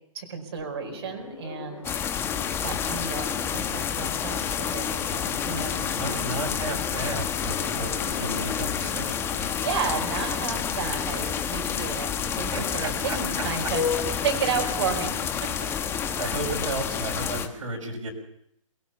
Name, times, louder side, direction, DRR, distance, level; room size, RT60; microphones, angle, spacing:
voice 1, 0.1-1.9 2.6-6.5 9.5-12.1 12.4-13.8 14.2-15.5, right 6 dB, 50° right, 3 dB, 4.7 m, -32 dB
sound 1, 0.6-17.4, left 6 dB, 65° left, 2.5 m, -39 dB
sound 2, 1.8-17.5, left 8 dB, 15° left, 1.2 m, -29 dB
voice 2, 5.9-9.5 12.5-13.7 16.2-18.1, right 2 dB, 70° right, -1 dB, 6.0 m, -34 dB
21.0 x 18.5 x 6.9 m, 0.73 s
hypercardioid pair, 140°, 18 cm